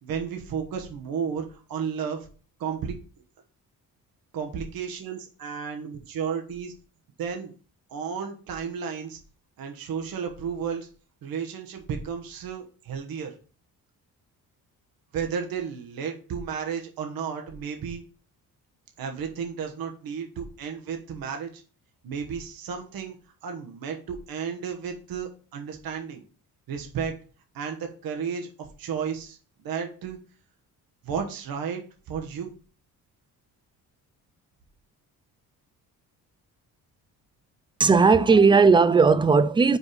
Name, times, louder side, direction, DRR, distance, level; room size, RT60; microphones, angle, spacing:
voice 1, 0.0-2.3 2.6-3.0 4.3-6.7 7.2-7.5 7.9-9.2 9.6-10.9 11.2-13.3 15.1-18.0 19.0-21.6 22.0-23.1 23.4-26.2 26.7-27.1 27.5-30.2 31.0-31.8 32.1-32.5, right 7 dB, 75° right, 1.2 m, -33 dB
voice 2, 37.8-39.8, right 4 dB, 15° right, 0.4 m, -17 dB
5.2 x 4.8 x 5.0 m
cardioid pair, 125°, 36 cm